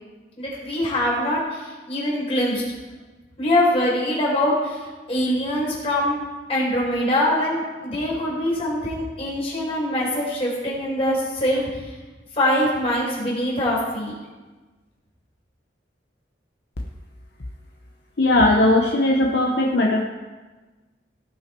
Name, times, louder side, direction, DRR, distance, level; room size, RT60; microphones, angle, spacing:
voice 1, 0.4-2.6 3.4-4.8 5.1-6.2 6.5-11.6 12.3-14.1, left 1 dB, 35° left, -5 dB, 4.4 m, -23 dB
voice 2, 18.2-20.0, left 1 dB, 65° left, 0 dB, 0.9 m, -18 dB
18.0 x 6.0 x 4.5 m, 1.2 s
head